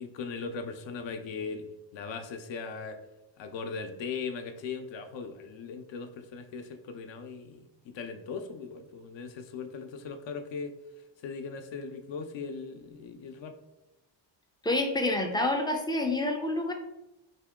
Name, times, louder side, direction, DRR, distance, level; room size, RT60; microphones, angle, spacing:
voice 1, 0.0-3.0 3.4-10.7 11.2-13.6, left 5 dB, 70° left, 7 dB, 0.6 m, -39 dB
voice 2, 14.6-16.7, left 2 dB, 10° left, 3 dB, 0.3 m, -28 dB
2.9 x 2.7 x 3.5 m, 0.95 s
cardioid pair, 95°, 47 cm